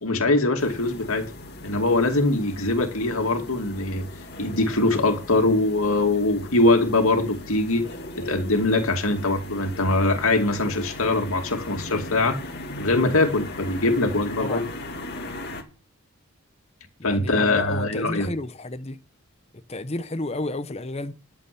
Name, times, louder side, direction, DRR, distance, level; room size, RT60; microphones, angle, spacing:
voice 1, 0.0-1.3 1.6-4.1 4.4-7.9 8.2-12.4 12.8-14.6 17.0-18.3, left 2 dB, 75° left, 2.5 m, -22 dB
sound 1, 0.6-15.6, left 1 dB, 45° left, 2.2 m, -38 dB
voice 2, 17.0-19.0 19.7-21.1, left 2 dB, 30° left, 0.8 m, -31 dB
12.5 x 7.0 x 7.0 m
head